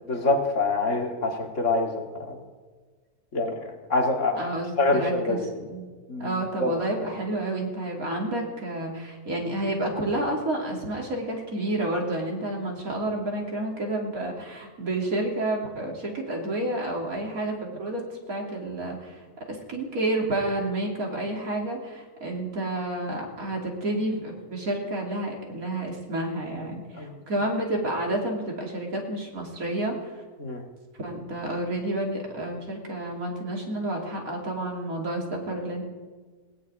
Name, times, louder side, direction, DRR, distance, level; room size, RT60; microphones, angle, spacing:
voice 1, 0.1-2.4 3.3-3.5 3.9-5.5 6.1-6.7 27.0-27.1 30.4-30.6, left 2 dB, 50° left, 1 dB, 2.4 m, -26 dB
voice 2, 4.4-5.9 6.2-19.2 19.5-30.2 31.0-35.8, right 1 dB, 60° right, -1 dB, 3.4 m, -30 dB
18.0 x 7.9 x 9.4 m, 1.5 s
omnidirectional pair, 1.7 m